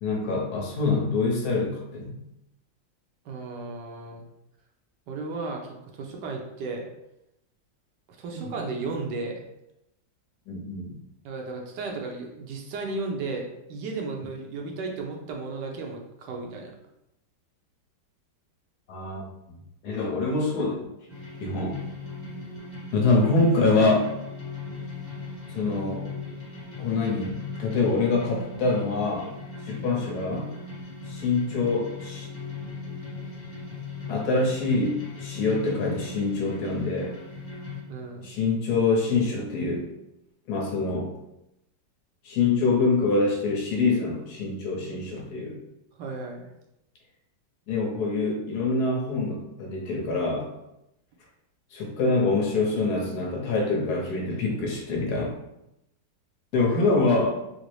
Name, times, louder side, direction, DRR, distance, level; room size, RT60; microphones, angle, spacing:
voice 1, 0.0-2.2 8.3-8.4 10.5-10.9 18.9-19.6 19.8-20.9 21.4-21.8 22.9-24.1 25.5-26.1 26.8-29.3 29.6-30.5 31.0-32.3 34.1-37.2 38.2-39.9 40.5-41.1 42.2-45.6 47.7-50.5 51.7-55.4 56.5-57.4, left 3 dB, 65° left, -1 dB, 1.2 m, -25 dB
voice 2, 3.2-4.2 5.1-6.9 8.2-9.5 11.2-16.7 37.9-38.3 45.9-46.5, right 3 dB, 75° right, 1 dB, 1.2 m, -34 dB
sound 1, 21.1-37.8, left 4 dB, 10° left, 0.7 m, -38 dB
3.8 x 2.0 x 3.0 m, 0.85 s
omnidirectional pair, 2.0 m